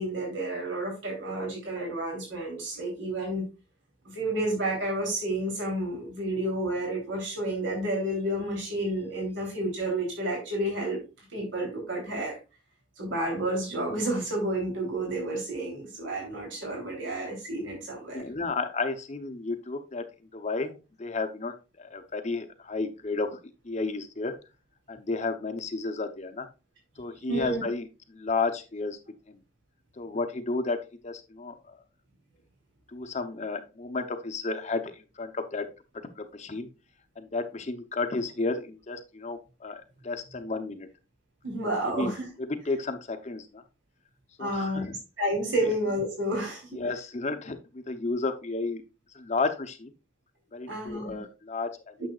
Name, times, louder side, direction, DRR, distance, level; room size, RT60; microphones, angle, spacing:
voice 1, 0.0-3.4 4.0-11.0 11.3-12.3 13.0-18.2 27.3-27.6 41.4-42.3 44.4-46.8 50.7-51.2, right 1 dB, 70° right, -1 dB, 3.3 m, -30 dB
voice 2, 18.1-20.1 20.3-23.4 23.6-24.4 24.9-26.5 27.0-29.0 29.3-29.4 30.0-31.8 32.9-35.7 36.2-36.7 37.2-40.9 42.0-42.1 42.6-43.6 44.4-44.9 46.7-48.8 49.1-49.9 50.5-51.9, left 3 dB, 35° left, 7 dB, 0.8 m, -32 dB
9.0 x 6.9 x 2.4 m, 0.29 s
head